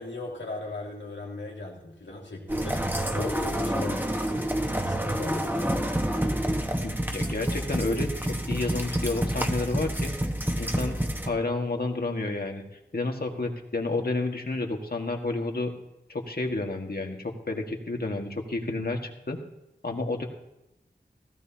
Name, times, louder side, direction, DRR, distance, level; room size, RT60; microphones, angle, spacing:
voice 1, 0.0-2.8 3.1-5.7, left 2 dB, 85° left, -2 dB, 2.5 m, -37 dB
sound 1, 2.5-11.3, equal, 10° right, 1.3 m, -28 dB
voice 2, 6.8-10.1 10.6-11.0 11.2-12.6 12.9-15.7 16.1-19.4 19.8-20.2, left 2 dB, 55° left, 2 dB, 1.8 m, -30 dB
16.5 x 14.5 x 2.9 m, 0.90 s
wide cardioid pair, 45°, 18 cm